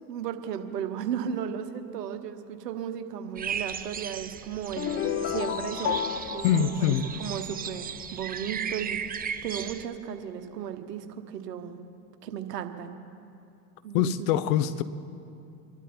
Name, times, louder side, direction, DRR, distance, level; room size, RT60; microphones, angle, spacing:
voice 1, 0.1-6.7 7.2-11.8 12.2-12.9 13.8-14.3, right 8 dB, 80° right, 1.3 m, -35 dB
sound 1, 3.4-9.9, right 7 dB, 20° right, 0.6 m, -36 dB
sound 2, 4.8-7.8, left 10 dB, 25° left, 0.5 m, -32 dB
voice 2, 6.4-7.1 13.9-14.8, left 9 dB, 60° left, 0.9 m, -24 dB
24.0 x 12.0 x 4.4 m
hypercardioid pair, 85°, 48 cm